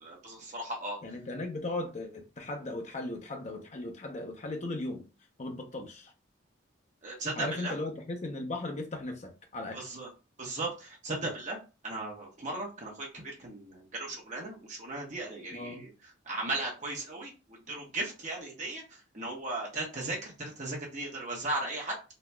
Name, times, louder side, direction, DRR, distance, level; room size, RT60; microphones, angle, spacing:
voice 1, 0.0-1.0 7.0-7.7 9.7-10.1 10.4-11.6 11.8-15.9 16.2-22.0, right 2 dB, 35° right, -2 dB, 1.2 m, -36 dB
voice 2, 1.0-5.0 5.4-6.1 7.3-9.8 15.5-15.8, left 2 dB, 35° left, 3 dB, 0.6 m, -37 dB
4.0 x 2.8 x 2.3 m, 0.30 s
head